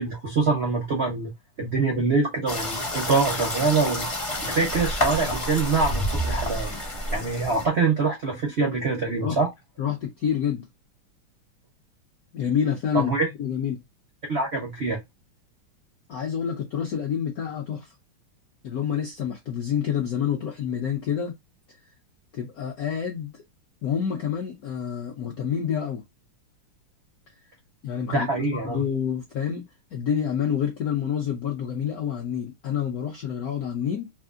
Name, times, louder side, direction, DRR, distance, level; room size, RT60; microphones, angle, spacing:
voice 1, 0.0-1.3 1.6-6.7 7.1-9.5 12.9-13.3 14.3-15.0 28.1-28.8, right 4 dB, 75° right, 0.5 m, -25 dB
sound 1, 2.5-7.6, left 1 dB, 30° left, 0.6 m, -29 dB
voice 2, 9.8-10.6 12.3-13.1 13.4-13.8 16.1-17.9 18.6-21.4 22.3-23.4 23.8-26.0 27.8-29.7 29.9-34.1, left 8 dB, 75° left, 0.8 m, -28 dB
3.5 x 2.6 x 2.4 m
omnidirectional pair, 2.4 m